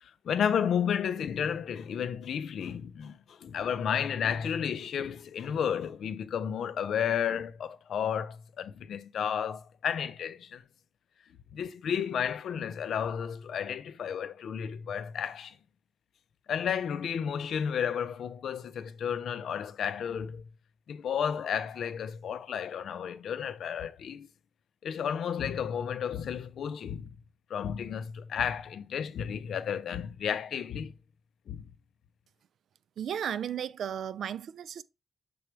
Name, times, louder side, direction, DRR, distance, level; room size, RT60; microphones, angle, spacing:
voice 1, 0.0-10.6 11.5-15.6 16.5-20.5 20.9-24.3 24.8-27.1 27.5-30.9 31.5-31.7, left 8 dB, 80° left, 0.6 m, -32 dB
voice 2, 33.0-34.8, right 9 dB, 80° right, 0.4 m, -34 dB
7.0 x 4.9 x 3.1 m
cardioid pair, 100°, 0 cm